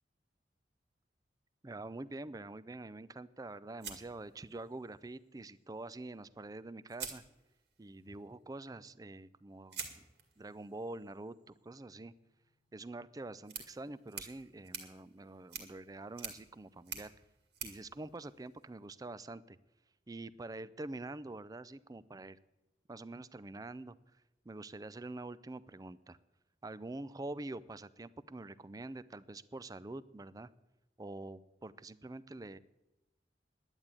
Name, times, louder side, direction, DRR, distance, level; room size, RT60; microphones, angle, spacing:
voice 1, 1.6-7.2 7.8-9.8 10.4-12.1 12.7-17.1 17.6-19.6 20.1-22.4 22.9-26.2 26.6-30.5 31.0-32.6, right 2 dB, 20° right, 17 dB, 0.4 m, -46 dB
sound 1, 3.8-4.9 6.3-6.4 6.9-7.9 9.7-18.9, right 7 dB, 65° right, 2.1 m, -49 dB
11.0 x 8.9 x 9.7 m, 0.97 s
head